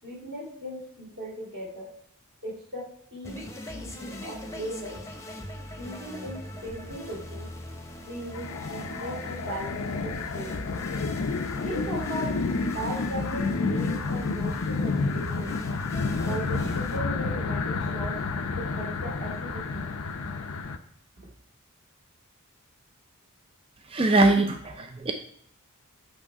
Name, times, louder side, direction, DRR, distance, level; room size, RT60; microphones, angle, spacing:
voice 1, 0.0-1.9 2.4-2.8 3.1-3.4 3.7-5.0 5.8-7.5 8.1-10.6 11.6-12.3 12.7-15.5 16.2-18.2 18.6-19.9, right 1 dB, 55° right, -5 dB, 2.7 m, -37 dB
sound 1, 3.2-17.0, left 1 dB, 15° left, 0.9 m, -41 dB
sound 2, 8.3-20.8, left 4 dB, 70° left, 0.6 m, -30 dB
voice 2, 23.9-25.1, right 2 dB, 25° right, 4 dB, 0.5 m, -22 dB
8.8 x 3.3 x 4.7 m, 0.71 s
head